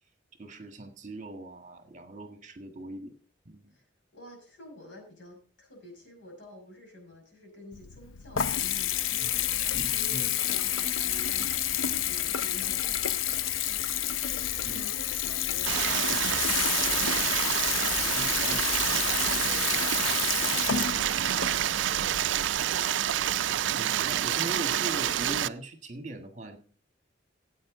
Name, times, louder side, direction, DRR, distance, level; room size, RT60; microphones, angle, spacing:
voice 1, 0.4-3.1 3.4-3.7 9.2-9.3 9.7-10.3 14.6-14.9 17.9-18.8 22.0-22.2 23.7-26.6, right 1 dB, 40° right, 6 dB, 1.5 m, -40 dB
voice 2, 4.1-22.4, left 1 dB, 70° left, 2 dB, 5.6 m, -49 dB
Water tap faucet / Bathtub (filling or washing) / Trickle dribble, 7.7-22.6, left 10 dB, 90° left, 0.5 m, -30 dB
Stream, 15.7-25.5, right 11 dB, 70° right, 0.4 m, -28 dB
14.5 x 8.6 x 3.7 m, 0.41 s
head